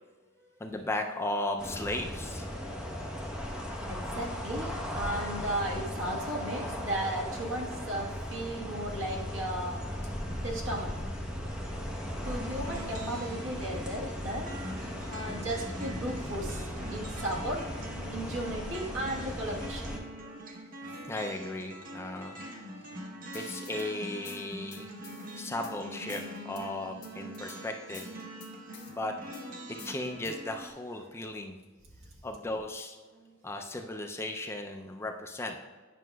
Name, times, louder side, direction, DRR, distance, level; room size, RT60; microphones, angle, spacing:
voice 1, 0.6-2.5 21.1-22.4 23.3-24.9 25.3-28.1 28.9-29.1 29.8-31.6 32.2-33.0 33.4-35.6, left 1 dB, 15° left, 3 dB, 0.4 m, -36 dB
sound 1, 1.6-20.0, equal, 5° right, 0.8 m, -37 dB
voice 2, 3.8-9.9 10.4-11.0 12.2-17.7 18.1-20.5 33.1-33.2, right 1 dB, 70° right, -1 dB, 1.4 m, -36 dB
sound 2, 12.2-30.7, right 1 dB, 45° right, 0.8 m, -44 dB
sound 3, 23.3-23.9 24.2-25.7 26.1-26.6 27.0-27.6 27.9-28.9 29.3-30.5, left 6 dB, 55° left, 1.1 m, -49 dB
9.2 x 6.0 x 2.3 m, 1.4 s
head